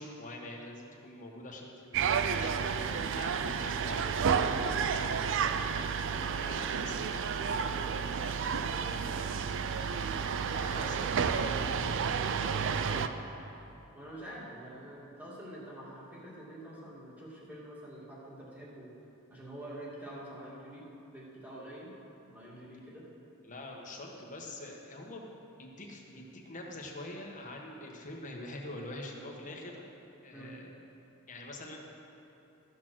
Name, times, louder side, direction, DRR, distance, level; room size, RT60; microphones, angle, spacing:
voice 1, 0.0-4.8 6.2-9.2 10.4-13.1 23.4-25.3 25.6-29.8 30.2-30.7 31.3-31.8, left 1 dB, 35° left, 0 dB, 1.4 m, -45 dB
sound 1, 1.9-13.1, right 6 dB, 60° right, 0.5 m, -31 dB
voice 2, 5.5-6.7 9.7-10.4 12.7-13.1 13.9-18.9 19.3-20.9 21.1-21.9 22.3-23.0 30.3-30.6, right 1 dB, 5° right, -6 dB, 2.3 m, -47 dB
14.0 x 6.5 x 6.1 m, 2.9 s
head